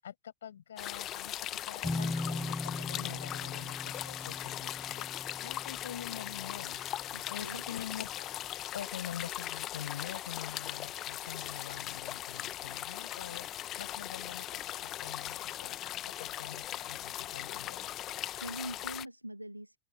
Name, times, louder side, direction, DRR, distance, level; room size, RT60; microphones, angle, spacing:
voice 1, 0.0-8.3 8.7-15.8 16.2-17.8, left 9 dB, 65° left, 7.9 m, -45 dB
sound 1, 0.8-19.1, left 13 dB, 30° left, 1.3 m, -39 dB
sound 2, 1.8-7.4, left 2 dB, 5° left, 1.3 m, -40 dB
voice 2, 7.1-7.6 18.4-19.8, right 1 dB, 90° right, 1.7 m, -43 dB
open air
figure-of-eight pair, 90°, 0 cm